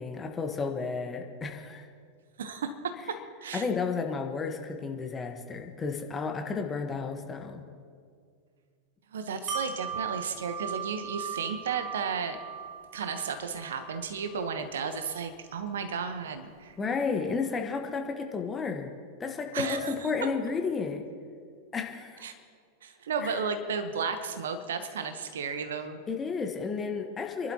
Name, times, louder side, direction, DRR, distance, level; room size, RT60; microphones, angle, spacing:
voice 1, 0.0-1.8 3.5-7.6 16.8-18.9 19.2-21.0 21.7-22.3 23.2-23.4 26.1-27.5, left 5 dB, 20° left, 4 dB, 1.4 m, -32 dB
voice 2, 2.4-3.7 9.1-12.4 12.9-16.8 19.5-19.9 20.2-20.3 22.2-22.3 22.8-26.0, right 5 dB, 65° right, 8 dB, 1.1 m, -33 dB
Wind chime, 9.5-15.3 15.7-15.8, right 7 dB, 30° right, 2.4 m, -39 dB
29.0 x 11.5 x 3.0 m, 2.1 s
figure-of-eight pair, 90°, 0 cm